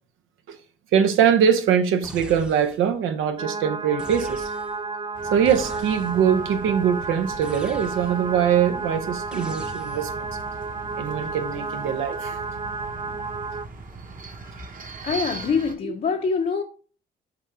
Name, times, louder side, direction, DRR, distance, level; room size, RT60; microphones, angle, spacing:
voice 1, 0.9-4.5 5.3-10.3 11.0-12.4, right 8 dB, 85° right, 0.8 m, -22 dB
sound 1, 2.0-3.0 4.0-4.9 5.4-6.3 7.4-8.3 9.3-10.2, equal, 5° right, 0.7 m, -41 dB
sound 2, 3.4-13.7, right 4 dB, 30° right, 0.4 m, -32 dB
sound 3, 5.1-15.7, right 3 dB, 45° right, 1.1 m, -40 dB
voice 2, 15.0-16.6, left 5 dB, 45° left, 0.6 m, -24 dB
6.1 x 4.3 x 3.6 m
cardioid pair, 90°, 20 cm